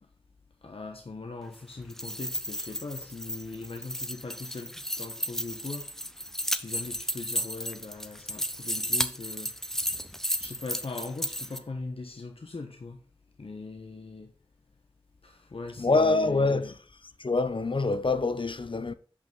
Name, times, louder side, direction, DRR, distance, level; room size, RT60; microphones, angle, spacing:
voice 1, 0.6-5.9 6.2-9.5 10.4-13.0 13.4-14.3 15.2-16.7, left 3 dB, 80° left, 1.1 m, -40 dB
sound 1, 1.8-11.6, equal, 5° left, 0.9 m, -33 dB
voice 2, 15.8-16.7 17.2-18.9, left 3 dB, 60° left, 0.9 m, -25 dB
8.7 x 5.5 x 5.5 m
wide cardioid pair, 55°, 10 cm